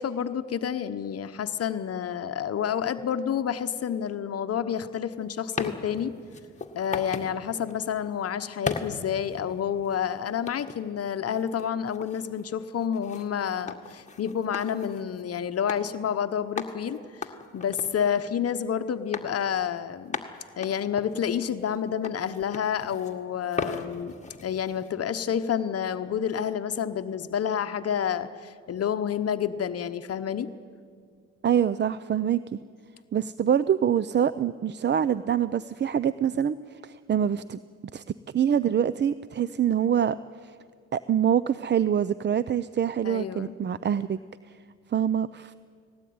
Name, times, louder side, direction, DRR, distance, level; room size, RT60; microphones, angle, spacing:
voice 1, 0.0-6.1 6.7-20.2 20.6-24.1 24.4-30.5 43.0-43.6, left 8 dB, 50° left, 9 dB, 0.9 m, -29 dB
Large rocks, 5.3-7.3 7.7-7.9 8.7-10.0 10.5-10.8 11.3-15.2 15.7-15.8 16.1-16.2 16.6-18.7 19.1-19.4 19.8-19.9 20.1-21.8 22.0-23.2 23.5-24.9, left 4 dB, 25° left, 1.8 m, -37 dB
voice 2, 31.4-32.6 33.1-37.6 37.9-38.0 38.3-40.2 40.4-40.5 40.9-44.2 44.9-45.5, right 9 dB, 35° right, 16 dB, 0.5 m, -25 dB
19.5 x 17.5 x 9.4 m, 2.1 s
cardioid pair, 90°, 30 cm